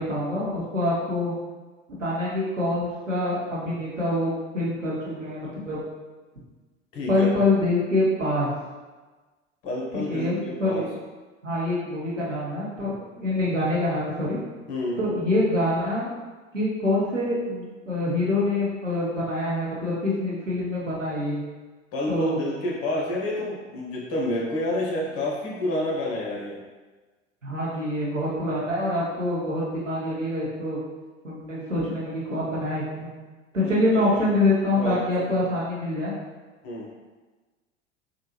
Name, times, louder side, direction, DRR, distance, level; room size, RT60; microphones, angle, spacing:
voice 1, 0.0-1.3 2.0-5.8 7.1-8.5 9.9-10.9 11.4-14.4 15.0-16.1 16.5-21.4 22.1-22.4 27.4-30.8 31.2-33.1 33.5-36.1, left 1 dB, 90° right, -7 dB, 0.8 m, -25 dB
voice 2, 6.9-7.3 9.6-10.9 14.7-15.0 21.9-26.6 33.6-34.1 34.7-35.5 36.6-36.9, left 1 dB, 40° left, -3 dB, 1.0 m, -29 dB
3.6 x 2.3 x 3.0 m, 1.3 s
figure-of-eight pair, 75°, 37 cm